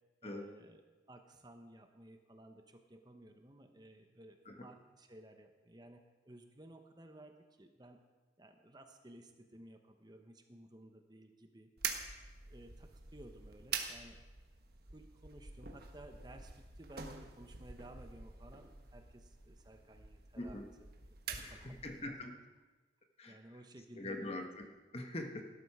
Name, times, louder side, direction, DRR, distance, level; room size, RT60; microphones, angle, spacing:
voice 1, 0.2-8.0 8.4-11.7 12.5-14.2 14.9-21.9 23.3-24.5, right 1 dB, 20° right, 5 dB, 1.0 m, -56 dB
sound 1, 11.8-22.1, right 6 dB, 55° right, 1.4 m, -46 dB
voice 2, 20.4-20.7 21.4-22.4 23.2-23.4 24.0-24.7 24.9-25.4, left 1 dB, 30° left, 5 dB, 1.3 m, -43 dB
17.5 x 12.5 x 4.9 m, 1.2 s
head